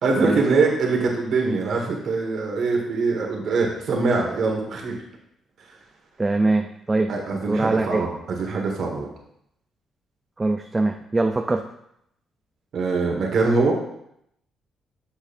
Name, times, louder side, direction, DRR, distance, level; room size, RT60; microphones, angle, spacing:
voice 1, 0.0-5.0 7.1-9.1 12.7-13.7, right 4 dB, 65° right, 0 dB, 1.7 m, -23 dB
voice 2, 6.2-8.1 10.4-11.6, right 2 dB, 20° right, 5 dB, 0.4 m, -23 dB
7.2 x 6.5 x 2.6 m, 0.77 s
cardioid pair, 90°, 0 cm